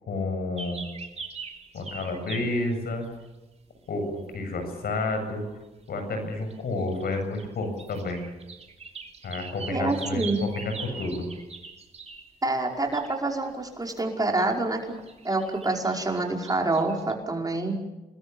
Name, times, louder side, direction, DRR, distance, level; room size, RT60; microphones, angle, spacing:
voice 1, 0.1-0.8 1.7-3.1 3.9-5.4 5.9-8.2 9.2-11.3, left 2 dB, 75° left, 6 dB, 7.8 m, -30 dB
sound 1, 0.6-3.3 4.0-4.4 5.9-6.0 6.3-12.3 12.7-14.4 14.7-17.1, right 5 dB, 45° right, 3.3 m, -43 dB
voice 2, 9.7-10.4 12.4-14.8 15.2-17.8, right 2 dB, 25° right, 1 dB, 5.3 m, -27 dB
28.5 x 21.0 x 7.2 m, 1.1 s
cardioid pair, 80°, 16 cm